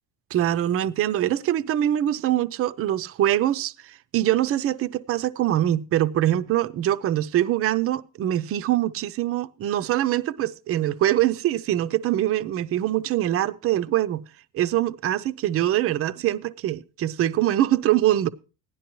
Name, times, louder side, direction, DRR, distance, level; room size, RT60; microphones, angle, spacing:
voice 1, 0.3-14.2 14.5-18.3, right 12 dB, 35° right, 0.5 m, -23 dB
16.5 x 11.5 x 3.0 m
cardioid pair, 175°, 40 cm